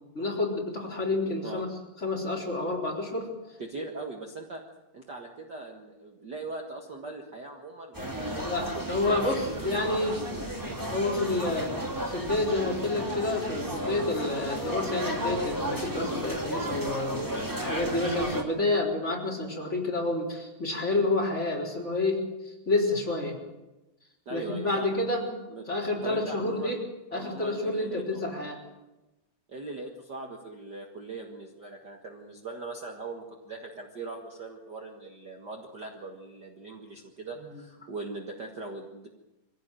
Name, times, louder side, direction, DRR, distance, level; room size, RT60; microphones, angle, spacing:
voice 1, 0.1-1.7 2.0-3.3 8.4-10.2 10.9-11.8 12.1-23.4 24.3-25.3 25.7-26.8 27.1-28.6, left 2 dB, 15° left, -1 dB, 3.7 m, -29 dB
voice 2, 1.2-1.6 3.6-4.6 4.9-10.9 11.2-11.6 24.2-25.0 25.5-25.7 26.0-26.8 27.1-28.2 29.5-39.1, right 3 dB, 60° right, 2 dB, 1.1 m, -40 dB
sound 1, 7.9-18.4, right 1 dB, 5° right, 1.9 m, -33 dB
24.0 x 16.0 x 9.1 m, 1.0 s
omnidirectional pair, 4.8 m